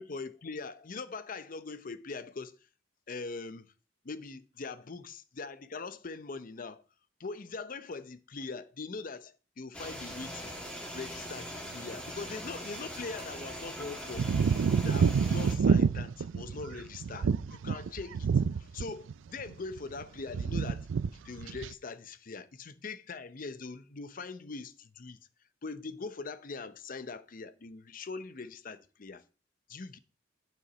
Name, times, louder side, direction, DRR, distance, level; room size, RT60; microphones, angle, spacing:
voice 1, 0.0-2.6 3.1-3.7 4.0-6.8 7.2-10.5 10.9-14.3 14.8-25.2 25.6-29.2 29.7-30.0, left 4 dB, 45° left, 0.6 m, -42 dB
sound 1, 9.7-15.5, equal, 5° left, 2.2 m, -41 dB
sound 2, 14.2-19.1 19.4-20.0 20.3-21.1 21.4-21.7, right 6 dB, 80° right, 0.4 m, -28 dB
11.0 x 5.7 x 5.0 m
head